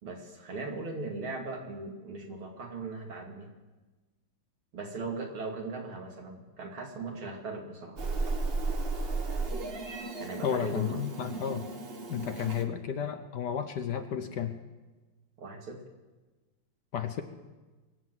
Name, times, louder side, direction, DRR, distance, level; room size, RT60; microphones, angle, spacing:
voice 1, 0.0-3.5 4.7-8.0 10.2-11.0 15.4-15.8, right 3 dB, 75° right, 1 dB, 3.2 m, -39 dB
Meow, 8.0-12.6, right 3 dB, 35° right, 1.2 m, -34 dB
voice 2, 10.4-11.7 12.1-14.5 16.9-17.2, left 8 dB, 60° left, 8 dB, 1.2 m, -32 dB
23.0 x 7.9 x 7.8 m, 1.2 s
omnidirectional pair, 2.4 m